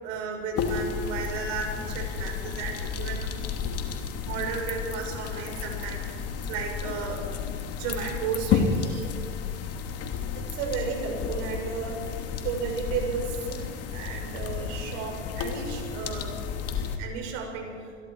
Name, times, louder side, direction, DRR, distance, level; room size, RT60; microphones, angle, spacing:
voice 1, 0.0-3.3 4.2-7.2 7.8-9.1 10.6-11.9 12.4-13.7 13.9-16.3 17.0-17.7, right 5 dB, 55° right, 1 dB, 6.4 m, -33 dB
sound 1, 0.5-17.0, left 6 dB, 45° left, 2.6 m, -32 dB
27.5 x 21.0 x 4.8 m, 2.1 s
hypercardioid pair, 80°, 35 cm